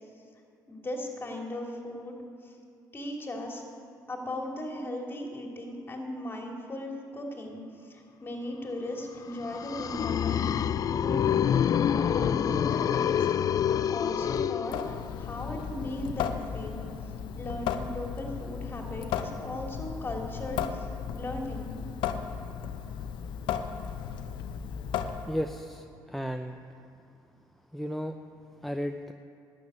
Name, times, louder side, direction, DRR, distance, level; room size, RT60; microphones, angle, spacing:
voice 1, 0.7-2.2 2.4-2.6 2.9-3.6 4.1-10.6 11.0-11.3 11.8-13.3 13.7-16.9 17.3-20.9 21.1-21.8, left 1 dB, 25° left, 0 dB, 2.9 m, -37 dB
sound 1, 9.3-15.2, left 9 dB, 45° left, 0.4 m, -27 dB
Water tap faucet / Sink (filling or washing) / Drip, 14.6-25.6, left 8 dB, 75° left, 0.8 m, -35 dB
voice 2, 25.3-26.6 27.7-28.2 28.6-29.1, equal, ahead, 7 dB, 0.6 m, -34 dB
12.0 x 7.6 x 9.3 m, 2.5 s
supercardioid pair, 80°, 8 cm